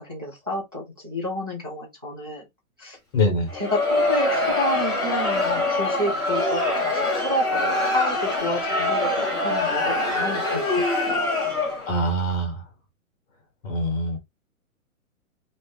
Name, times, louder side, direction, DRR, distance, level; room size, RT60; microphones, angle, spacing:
voice 1, 0.0-2.5 2.8-3.0 3.5-11.3, left 1 dB, 20° right, 0.3 m, -30 dB
voice 2, 3.1-3.5 11.9-12.6 13.6-14.2, equal, 25° left, 1.5 m, -24 dB
Crowd, 3.5-12.0, left 2 dB, 10° left, 0.7 m, -24 dB
2.8 x 2.5 x 3.5 m
hypercardioid pair, 160°, 41 cm